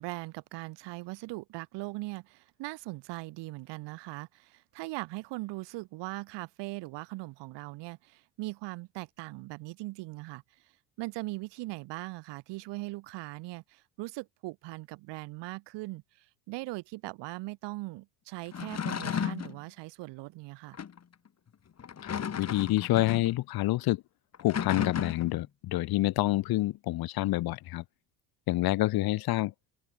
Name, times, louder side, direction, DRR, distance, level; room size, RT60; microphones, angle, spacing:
voice 1, 0.0-10.4 11.0-20.8, right 21 dB, 65° right, 2.4 m, -40 dB
sound 1, 18.5-19.6 20.7-21.0 21.8-23.3 24.3-25.4, left 7 dB, 35° left, 3.0 m, -34 dB
voice 2, 22.0-24.0 24.4-27.8 28.5-29.5, left 17 dB, 50° left, 1.0 m, -28 dB
hypercardioid pair, 80°, 46 cm